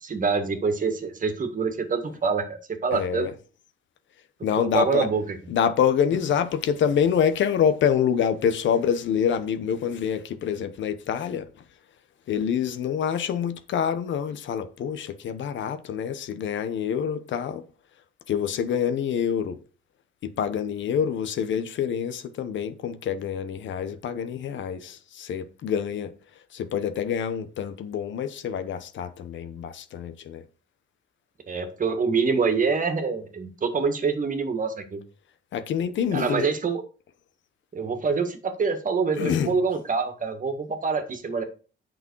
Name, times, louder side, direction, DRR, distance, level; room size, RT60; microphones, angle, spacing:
voice 1, 0.0-3.3 4.6-5.2 31.5-35.0 36.1-36.8 37.7-41.4, right 5 dB, 40° right, 1.9 m, -26 dB
voice 2, 2.9-3.3 4.4-5.1 5.5-11.5 12.3-17.6 18.3-19.6 20.2-26.1 26.5-30.4 35.5-36.5 39.2-39.6, left 8 dB, 70° left, 1.1 m, -26 dB
8.2 x 6.0 x 4.7 m
cardioid pair, 90°, 20 cm